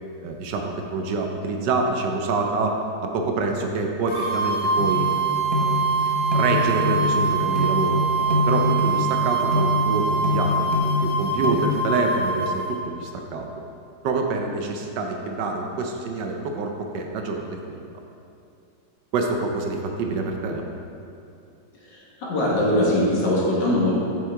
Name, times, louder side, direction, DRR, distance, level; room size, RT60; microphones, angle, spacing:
voice 1, 0.2-5.1 5.6-5.8 6.3-8.1 8.5-10.6 11.0-13.5 14.0-17.8 19.1-20.6, right 3 dB, 70° right, 3 dB, 1.2 m, -26 dB
sound 1, 4.1-12.7, right 4 dB, 30° left, 1.3 m, -24 dB
sound 2, 4.8-11.6, left 2 dB, 45° right, 0.4 m, -25 dB
voice 2, 21.8-23.9, left 1 dB, 65° left, -5 dB, 2.0 m, -22 dB
7.4 x 6.3 x 3.5 m, 2.6 s
omnidirectional pair, 2.1 m